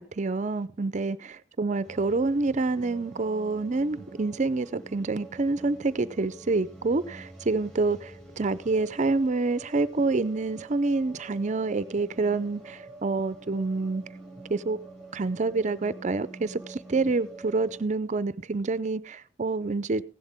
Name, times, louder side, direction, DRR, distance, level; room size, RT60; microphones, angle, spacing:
voice 1, 0.0-14.0 14.5-14.8 15.1-20.0, right 3 dB, 40° right, 0.5 m, -27 dB
sound 1, 1.8-17.8, right 2 dB, 5° left, 5.9 m, -47 dB
16.0 x 11.0 x 3.5 m
head